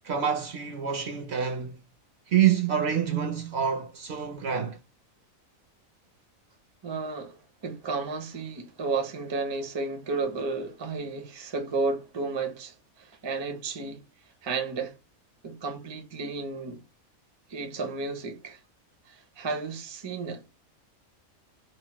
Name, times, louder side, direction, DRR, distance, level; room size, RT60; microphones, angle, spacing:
voice 1, 0.0-1.8 2.3-4.8, right 9 dB, 65° right, 0.7 m, -27 dB
voice 2, 6.8-7.4 7.6-12.7 13.0-14.0 14.4-14.9 15.4-16.8 17.5-18.6 19.4-20.4, right 4 dB, 35° right, 0.4 m, -32 dB
3.0 x 2.0 x 2.9 m
omnidirectional pair, 1.4 m